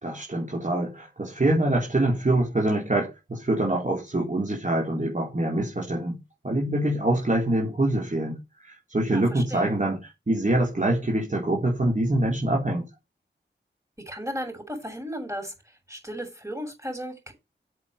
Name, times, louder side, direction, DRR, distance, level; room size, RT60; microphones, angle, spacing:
voice 1, 0.0-6.2 6.4-8.4 8.6-10.0 10.3-12.8, right 1 dB, 40° right, 4.0 m, -25 dB
voice 2, 9.1-9.8 14.1-15.5 15.9-17.3, equal, 15° right, 7.2 m, -35 dB
8.8 x 7.7 x 6.7 m
wide cardioid pair, 65°, 19 cm